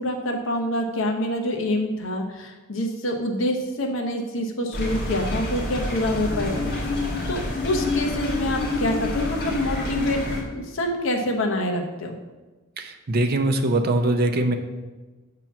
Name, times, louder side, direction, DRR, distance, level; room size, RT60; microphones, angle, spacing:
voice 1, 0.0-6.6 7.3-10.2 10.5-12.2, left 1 dB, 65° left, 2 dB, 0.9 m, -26 dB
sound 1, 4.7-10.4, left 2 dB, 50° left, 1.3 m, -27 dB
voice 2, 12.8-14.5, right 2 dB, 45° right, 7 dB, 0.5 m, -22 dB
7.1 x 3.0 x 5.9 m, 1.2 s
head